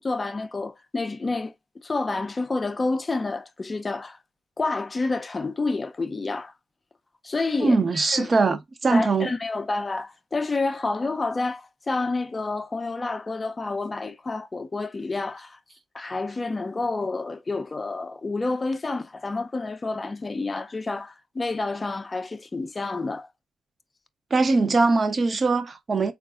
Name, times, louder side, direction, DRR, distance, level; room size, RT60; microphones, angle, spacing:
voice 1, 0.0-4.2 4.6-6.5 7.2-8.3 8.9-15.6 15.9-23.3, left 3 dB, 25° left, 0.5 m, -29 dB
voice 2, 7.6-9.3 24.3-26.1, right 3 dB, 35° right, 0.7 m, -21 dB
3.9 x 2.4 x 2.4 m
cardioid pair, 90°, 0 cm